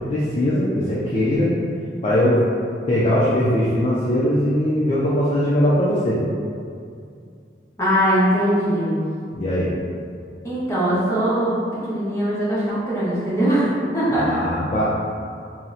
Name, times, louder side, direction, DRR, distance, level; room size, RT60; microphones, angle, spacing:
voice 1, 0.1-1.5 2.0-2.4 2.9-6.2 9.3-9.7 14.1-14.9, equal, 30° left, -8 dB, 0.4 m, -20 dB
voice 2, 7.8-8.9 10.4-14.4, equal, 15° left, -10 dB, 0.8 m, -21 dB
2.8 x 2.0 x 3.7 m, 2.4 s
head